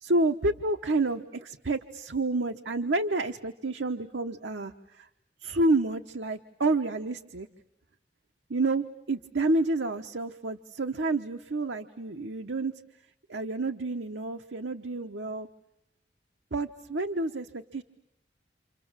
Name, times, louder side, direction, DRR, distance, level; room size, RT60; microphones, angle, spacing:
voice 1, 0.0-5.1 5.4-7.5 8.5-12.7 13.3-15.5 16.5-17.8, right 2 dB, 85° right, 6 dB, 1.1 m, -29 dB
28.5 x 27.5 x 7.4 m, 0.84 s
head